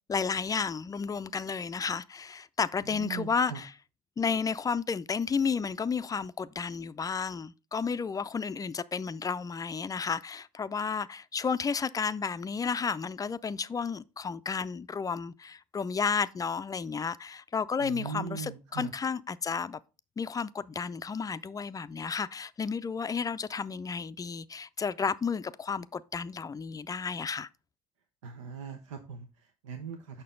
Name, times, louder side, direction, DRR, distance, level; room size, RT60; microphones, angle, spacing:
voice 1, 0.1-3.7 4.2-19.8 20.2-27.5, left 5 dB, 25° left, 0.4 m, -32 dB
voice 2, 2.9-3.6 17.8-18.9 28.2-30.2, right 7 dB, 90° right, 0.7 m, -40 dB
6.7 x 5.7 x 3.7 m
hypercardioid pair, 70°, 16 cm